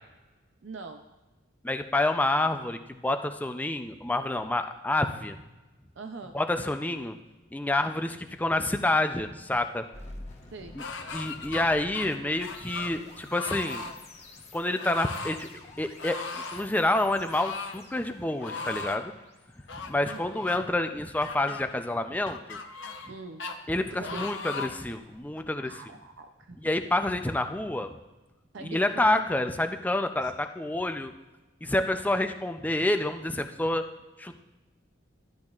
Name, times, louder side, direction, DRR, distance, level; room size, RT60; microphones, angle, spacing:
voice 1, 0.6-1.0 6.0-6.4 10.5-10.8 20.0-20.3 23.1-23.4 24.0-24.3 25.6-26.6 28.5-29.3 30.0-30.3, right 4 dB, 65° right, 6 dB, 0.5 m, -43 dB
voice 2, 1.6-5.4 6.3-7.2 7.5-9.8 10.8-10.9 11.1-13.8 14.5-15.5 15.7-19.1 19.8-22.6 23.7-25.8 26.6-27.9 28.6-31.1 31.6-33.8 34.2-34.4, left 2 dB, 10° left, 7 dB, 0.4 m, -28 dB
sound 1, 9.9-21.0, left 2 dB, 35° left, 1.2 m, -50 dB
sound 2, 10.8-11.6 11.9-12.9 13.3-13.9 14.8-15.4 16.0-16.7 17.3-17.8 18.4-19.0 19.7-20.6 21.2-21.6 22.3-23.1 23.4-23.6 24.0-24.8 25.4-25.5, left 4 dB, 70° left, 0.8 m, -37 dB
13.0 x 10.5 x 2.4 m, 1.1 s
head